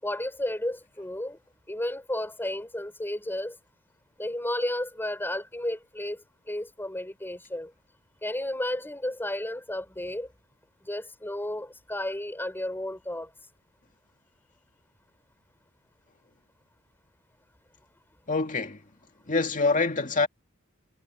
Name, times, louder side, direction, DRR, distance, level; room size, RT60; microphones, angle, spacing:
voice 1, 0.0-1.4 1.7-3.6 4.2-7.7 8.2-10.3 10.8-13.3, left 1 dB, 10° left, 4.5 m, -32 dB
voice 2, 18.3-18.8 19.3-20.3, left 3 dB, 40° left, 2.1 m, -25 dB
head